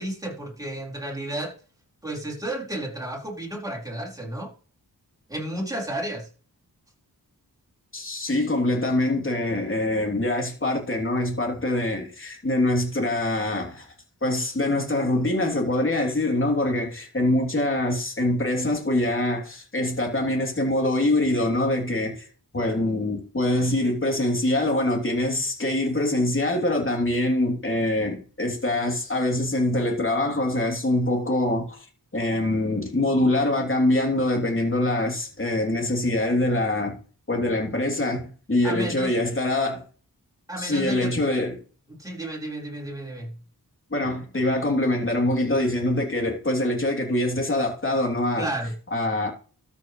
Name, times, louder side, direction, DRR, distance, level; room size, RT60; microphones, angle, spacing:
voice 1, 0.0-1.5 2.0-4.5 5.3-6.3 38.6-39.1 40.5-41.1 41.9-43.3 48.4-48.7, right 1 dB, 10° right, 4.6 m, -32 dB
voice 2, 7.9-13.9 14.2-22.3 22.5-31.8 32.1-37.0 37.3-39.8 40.6-41.6 43.9-48.5 48.9-49.3, left 1 dB, 35° left, 3.2 m, -24 dB
13.0 x 7.0 x 3.3 m
wide cardioid pair, 85°, 37 cm